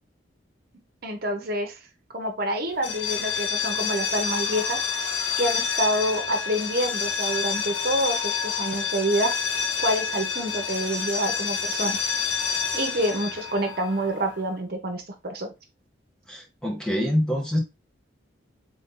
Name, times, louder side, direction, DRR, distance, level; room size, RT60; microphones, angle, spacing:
voice 1, 1.0-1.8 2.1-9.4 9.8-12.0 12.7-15.5, right 1 dB, 50° right, 4 dB, 0.9 m, -27 dB
sound 1, 2.8-14.5, left 6 dB, 70° left, 0.7 m, -28 dB
voice 2, 16.3-17.6, equal, 5° left, 1 dB, 0.7 m, -25 dB
3.8 x 2.7 x 3.7 m, 0.25 s
head